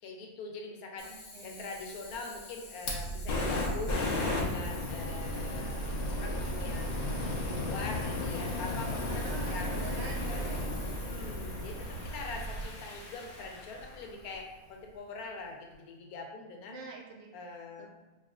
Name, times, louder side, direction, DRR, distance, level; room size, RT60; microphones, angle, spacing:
voice 1, 0.0-1.1 1.4-4.0 4.3-6.9 7.4-9.7 10.3-10.5 10.9-16.8 17.3-17.9, left 3 dB, 85° left, 1 dB, 1.2 m, -43 dB
Fire, 1.0-14.1, left 3 dB, 45° left, 0.9 m, -36 dB
voice 2, 1.0-1.6 8.6-10.6 16.7-17.3 17.8-17.9, right 4 dB, 55° right, 0 dB, 0.8 m, -46 dB
sound 1, 2.8-12.7, right 2 dB, 90° right, 1.3 m, -38 dB
4.6 x 3.2 x 2.4 m, 1.1 s
omnidirectional pair, 1.5 m